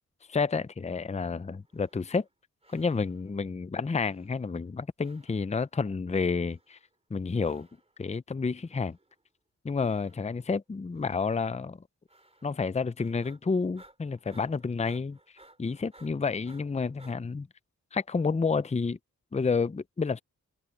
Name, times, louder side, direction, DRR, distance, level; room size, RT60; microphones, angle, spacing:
voice 1, 0.3-2.3 2.7-6.8 7.1-7.7 8.0-9.0 9.6-11.8 12.4-15.2 15.6-17.5 17.9-19.0 19.3-20.2, left 4 dB, 20° left, 0.5 m, -30 dB
sound 1, 1.6-2.3 2.6-3.4 4.0-4.7 5.0-5.7 6.3-7.0 7.4-8.0 8.6-9.3 9.8-10.5 10.9-11.4 12.1-12.7 13.0-17.2, right 2 dB, 20° right, 3.1 m, -60 dB
wide cardioid pair, 85°, 33 cm